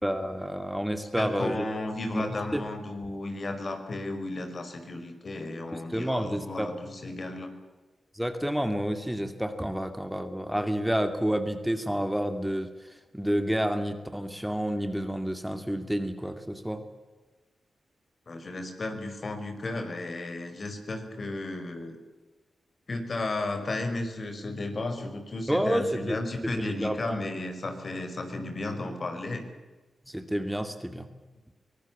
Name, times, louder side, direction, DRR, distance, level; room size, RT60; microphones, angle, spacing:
voice 1, 0.0-1.6 2.1-2.6 5.7-6.7 8.1-12.7 13.1-16.8 25.5-26.2 26.6-27.2 30.1-31.1, equal, 5° right, 8 dB, 2.5 m, -29 dB
voice 2, 1.2-7.5 18.3-22.0 22.9-29.5, left 2 dB, 55° left, 6 dB, 5.3 m, -34 dB
24.5 x 19.0 x 8.7 m, 1.2 s
supercardioid pair, 45°, 0 cm